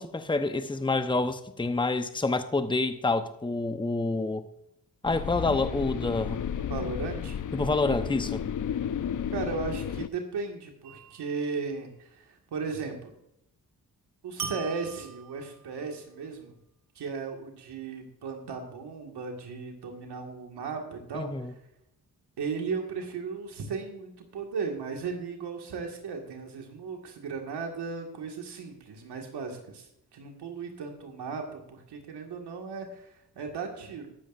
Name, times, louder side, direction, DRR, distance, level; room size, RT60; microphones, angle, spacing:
voice 1, 0.0-4.5 5.0-6.4 7.5-8.5 21.1-21.5, left 3 dB, 10° left, 0.9 m, -28 dB
sound 1, 5.0-10.1, left 8 dB, 50° left, 0.6 m, -33 dB
voice 2, 6.6-7.4 9.3-13.1 14.2-16.6 17.0-21.5 22.4-34.1, right 5 dB, 90° right, 2.1 m, -36 dB
sound 2, 10.8-11.5 14.4-15.8, right 6 dB, 60° right, 2.5 m, -41 dB
13.5 x 12.5 x 2.6 m
cardioid pair, 50°, 39 cm